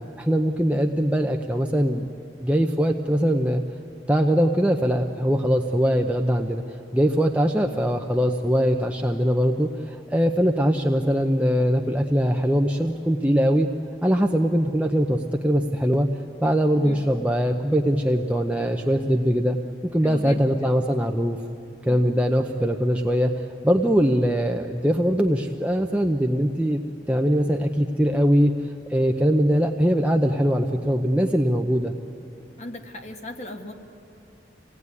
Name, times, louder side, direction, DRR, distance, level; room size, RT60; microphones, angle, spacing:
voice 1, 0.0-2.1 2.4-3.6 4.1-6.6 6.9-13.7 14.0-16.1 16.4-19.6 19.9-21.4 21.8-23.3 23.6-26.8 27.1-32.0, equal, 5° right, 2 dB, 0.7 m, -22 dB
voice 2, 20.0-20.4 21.9-22.1 32.6-33.7, left 2 dB, 40° left, 4 dB, 1.5 m, -36 dB
26.0 x 18.0 x 9.7 m, 2.7 s
head